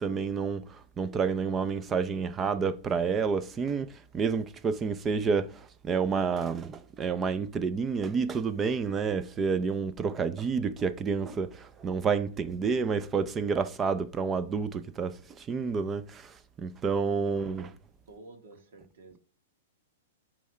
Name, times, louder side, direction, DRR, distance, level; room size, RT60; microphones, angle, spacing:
voice 1, 0.0-17.7, right 5 dB, 20° right, 0.4 m, -29 dB
voice 2, 17.0-17.7 18.1-19.2, right 2 dB, 75° right, 1.8 m, -51 dB
7.3 x 3.2 x 4.4 m
hypercardioid pair, 145°, 0 cm